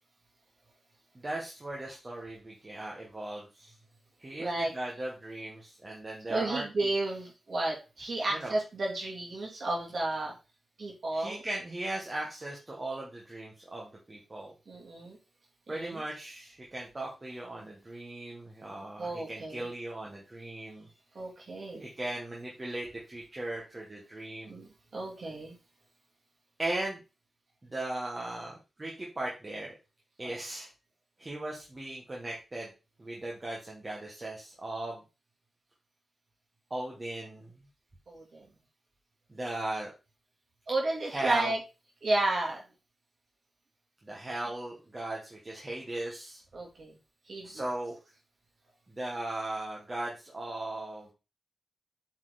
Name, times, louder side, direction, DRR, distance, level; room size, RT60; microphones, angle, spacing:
voice 1, 1.1-3.7 4.2-6.9 8.3-8.5 11.1-14.5 15.7-20.9 21.8-24.6 26.6-27.0 27.6-29.7 30.2-30.7 31.2-32.7 33.0-35.0 36.7-37.5 39.3-39.9 41.1-41.5 44.0-46.4 47.4-48.0 48.9-51.1, right 1 dB, 20° right, -3 dB, 1.5 m, -38 dB
voice 2, 4.4-4.7 6.3-10.3 10.8-11.4 14.7-15.2 15.7-16.0 19.0-19.7 21.1-21.8 24.5-25.5 30.2-30.4 38.1-38.5 40.7-41.6 42.0-42.7 46.5-47.0 47.3-47.6, right 2 dB, 50° right, -1 dB, 2.6 m, -32 dB
7.8 x 4.5 x 4.1 m, 0.29 s
wide cardioid pair, 175°, 0 cm